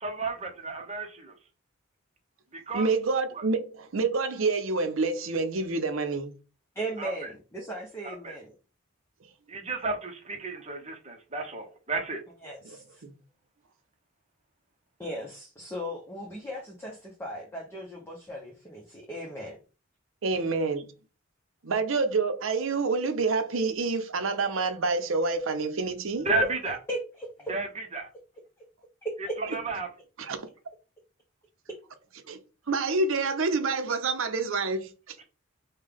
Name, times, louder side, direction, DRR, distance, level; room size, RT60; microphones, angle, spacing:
voice 1, 0.0-1.3 2.5-2.9 7.0-7.1 8.0-8.4 9.5-12.2 26.2-26.8 27.5-28.1 29.5-29.9, right 3 dB, 30° right, 0.8 m, -32 dB
voice 2, 2.7-6.3 12.6-12.8 13.0-13.1 20.2-20.9 21.6-26.3 30.2-30.5 32.3-32.4 32.7-35.2, right 3 dB, 75° right, 0.7 m, -27 dB
voice 3, 6.7-8.5 12.4-13.0 15.0-19.6 26.9-27.5 29.0-29.6, right 1 dB, 10° left, 0.7 m, -37 dB
5.4 x 2.2 x 3.4 m
head